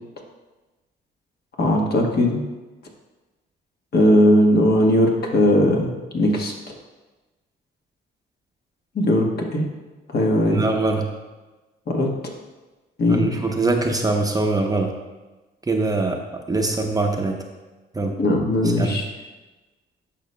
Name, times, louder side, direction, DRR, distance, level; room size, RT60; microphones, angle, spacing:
voice 1, 1.6-2.4 3.9-6.5 8.9-9.6 10.1-10.6 11.9-12.1 13.0-13.3 18.2-19.1, left 1 dB, 55° left, 0 dB, 1.3 m, -18 dB
voice 2, 10.5-11.1 13.1-14.9 15.7-16.2 16.5-17.4 17.9-18.2 18.8-19.0, right 3 dB, 20° right, 2 dB, 0.7 m, -22 dB
10.5 x 5.5 x 2.2 m, 1.2 s
cardioid pair, 90°, 20 cm